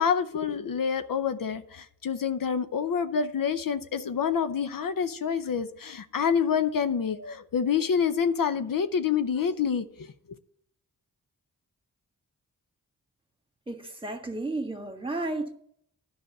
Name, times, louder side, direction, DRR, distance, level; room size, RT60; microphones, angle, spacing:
voice 1, 0.0-10.1, left 7 dB, 65° left, 10 dB, 0.7 m, -27 dB
voice 2, 13.7-15.5, right 2 dB, 15° right, 5 dB, 1.6 m, -33 dB
10.5 x 5.1 x 7.7 m, 0.68 s
cardioid pair, 55°, 36 cm